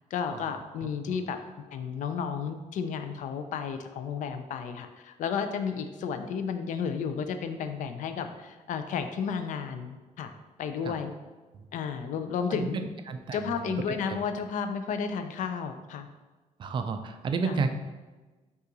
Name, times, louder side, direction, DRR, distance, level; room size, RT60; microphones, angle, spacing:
voice 1, 0.1-1.4 1.7-10.3 10.6-11.1 11.7-12.9 13.3-16.1 17.4-17.6, left 6 dB, 65° left, 8 dB, 0.4 m, -32 dB
voice 2, 12.5-14.0 16.6-17.7, right 4 dB, 35° right, 7 dB, 0.3 m, -31 dB
5.4 x 2.5 x 3.9 m, 1.2 s
cardioid pair, 155°, 14 cm